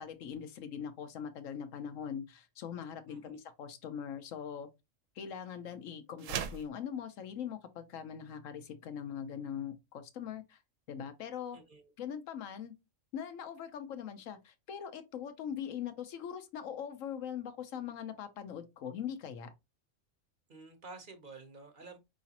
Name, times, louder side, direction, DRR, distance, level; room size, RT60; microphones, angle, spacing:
voice 1, 0.0-4.7 5.2-10.6 10.9-11.6 12.0-12.7 13.1-19.5, left 8 dB, 90° left, 1.1 m, -41 dB
sound 1, 6.2-6.7, right 8 dB, 85° right, 1.0 m, -37 dB
voice 2, 11.5-11.9 20.5-22.0, right 3 dB, 45° right, 0.9 m, -51 dB
4.8 x 3.1 x 2.8 m
omnidirectional pair, 1.3 m